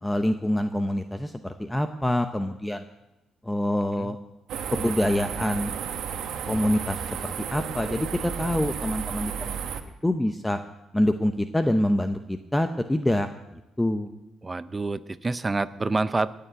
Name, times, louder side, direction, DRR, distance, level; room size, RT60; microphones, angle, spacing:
voice 1, 0.0-2.8 3.4-4.2 4.8-5.7 6.5-9.6 10.0-10.6 10.9-13.3 13.8-14.1, left 1 dB, 10° left, 8 dB, 0.8 m, -26 dB
sound 1, 4.5-9.8, right 7 dB, 75° right, 1.3 m, -33 dB
voice 2, 14.4-16.3, right 3 dB, 25° right, 15 dB, 0.6 m, -27 dB
18.0 x 6.8 x 9.0 m, 0.95 s
cardioid pair, 90°, 0 cm